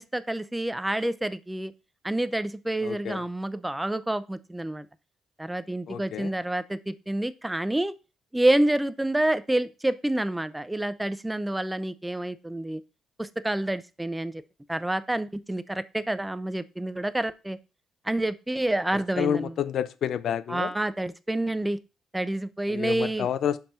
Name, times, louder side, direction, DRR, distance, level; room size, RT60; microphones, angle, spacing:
voice 1, 0.0-1.7 2.0-4.9 5.4-7.9 8.3-12.8 13.2-14.3 14.7-17.6 18.0-19.5 20.5-21.8 22.1-23.3, right 1 dB, 10° right, 0.5 m, -28 dB
voice 2, 2.8-3.2 5.9-6.3 19.2-20.7 22.7-23.6, left 9 dB, 65° left, 0.5 m, -29 dB
5.5 x 5.3 x 5.6 m
cardioid pair, 90°, 0 cm